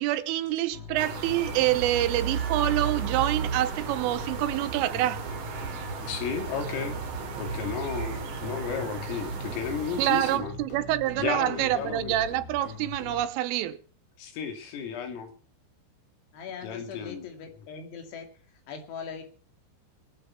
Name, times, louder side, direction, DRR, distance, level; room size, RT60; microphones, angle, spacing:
voice 1, 0.0-5.2 10.0-13.8, right 14 dB, 90° right, 3.5 m, -26 dB
sound 1, 0.7-13.3, left 3 dB, 40° left, 3.1 m, -42 dB
sound 2, 1.0-10.4, right 6 dB, 45° right, 3.1 m, -34 dB
voice 2, 6.1-7.0 7.4-10.5 11.2-12.2 14.2-15.3 16.6-17.3, left 6 dB, 90° left, 5.2 m, -33 dB
voice 3, 16.3-18.3 18.7-19.2, left 6 dB, 60° left, 4.2 m, -40 dB
22.0 x 8.3 x 5.8 m
omnidirectional pair, 5.7 m